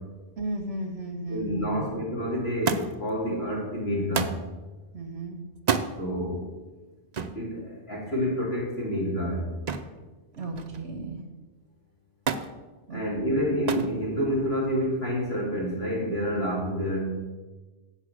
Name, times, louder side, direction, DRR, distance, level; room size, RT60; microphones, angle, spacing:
voice 1, 0.4-1.9 4.9-5.4 10.4-11.2 12.9-13.0, right 2 dB, 65° right, 1 dB, 1.3 m, -34 dB
voice 2, 1.3-4.3 6.0-6.5 7.3-9.5 12.9-17.1, equal, 60° left, -5 dB, 3.5 m, -28 dB
Thump thud, 2.7-3.1 4.1-4.5 5.6-5.9 7.1-7.4 9.7-10.0 10.3-10.9 12.3-12.5 13.7-14.0 14.9-15.4 16.4-16.5, right 6 dB, 45° right, 0.6 m, -29 dB
8.1 x 6.9 x 6.3 m, 1.2 s
omnidirectional pair, 1.2 m